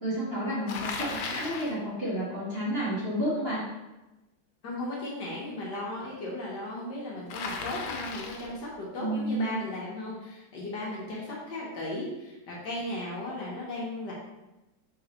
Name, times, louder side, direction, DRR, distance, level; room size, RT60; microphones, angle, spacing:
voice 1, 0.0-3.6 9.0-9.5 11.1-11.2, right 1 dB, 35° right, -9 dB, 1.4 m, -31 dB
Bicycle, 0.7-1.8 7.3-8.6, left 4 dB, 85° left, 1.4 m, -36 dB
voice 2, 4.6-14.1, left 1 dB, 65° left, -5 dB, 1.5 m, -36 dB
4.2 x 3.8 x 2.9 m, 1.0 s
omnidirectional pair, 2.1 m